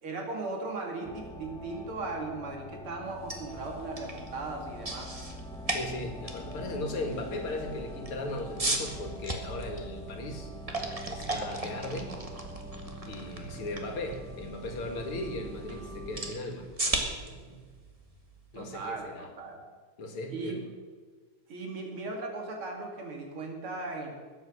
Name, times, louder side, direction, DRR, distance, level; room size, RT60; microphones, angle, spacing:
voice 1, 0.0-5.1 18.5-19.6 20.3-20.7 21.5-24.1, right 3 dB, 75° right, 1 dB, 3.4 m, -37 dB
sound 1, 1.0-16.3, equal, 5° left, 0.7 m, -44 dB
sound 2, 3.1-19.0, right 2 dB, 20° right, 1.3 m, -38 dB
voice 2, 5.7-12.1 13.0-17.6 18.5-19.3 20.0-20.6, left 2 dB, 80° left, 4 dB, 2.9 m, -38 dB
21.0 x 8.2 x 6.5 m, 1.5 s
omnidirectional pair, 2.4 m